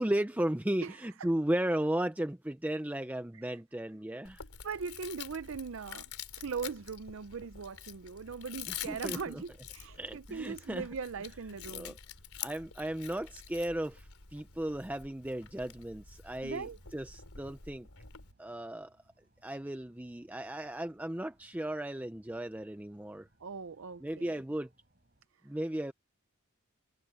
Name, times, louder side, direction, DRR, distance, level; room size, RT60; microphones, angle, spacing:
voice 1, 0.0-4.4 8.7-9.4 10.0-10.9 11.7-12.0 12.4-17.9 18.4-18.9 19.4-23.3 24.0-24.7 25.4-25.9, right 1 dB, 5° right, 0.5 m, -35 dB
Chewing mastication, 4.2-18.3, left 9 dB, 75° left, 3.7 m, -47 dB
voice 2, 4.6-6.1 6.4-12.0 12.4-12.5 16.4-16.8 23.4-24.4, right 5 dB, 60° right, 0.5 m, -40 dB
sound 1, 15.8-25.3, right 1 dB, 45° right, 8.0 m, -71 dB
head